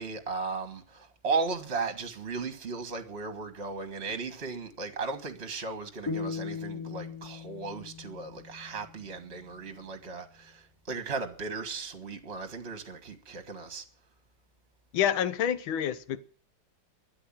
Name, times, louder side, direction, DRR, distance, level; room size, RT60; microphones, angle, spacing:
voice 1, 0.0-13.9, right 4 dB, 35° right, 1.7 m, -36 dB
sound 1, 6.1-9.2, left 5 dB, 10° left, 2.6 m, -38 dB
voice 2, 14.9-16.2, left 9 dB, 75° left, 1.8 m, -28 dB
13.0 x 10.0 x 8.8 m
omnidirectional pair, 2.3 m